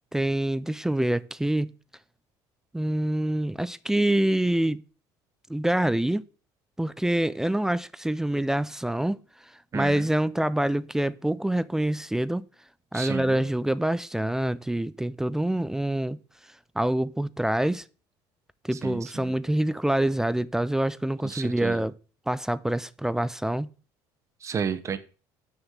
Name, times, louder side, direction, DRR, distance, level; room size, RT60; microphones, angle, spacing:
voice 1, 0.1-1.7 2.7-4.8 5.5-6.2 6.8-9.2 9.7-12.5 12.9-16.2 16.8-17.8 18.6-21.9 22.3-23.7, right 1 dB, 5° right, 0.4 m, -26 dB
voice 2, 9.7-10.1 12.9-13.5 18.7-19.3 21.2-21.8 24.4-25.0, right 7 dB, 35° right, 1.0 m, -32 dB
6.5 x 6.2 x 7.2 m
cardioid pair, 115°, 9 cm